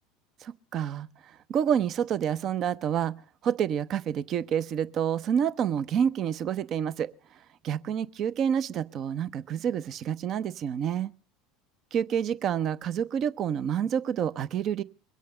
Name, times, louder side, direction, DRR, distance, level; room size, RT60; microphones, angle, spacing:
voice 1, 0.4-1.1 1.5-3.1 3.4-7.1 7.6-11.1 11.9-14.8, right 8 dB, 45° right, 0.7 m, -28 dB
22.5 x 8.5 x 6.6 m
figure-of-eight pair, 75°, 0 cm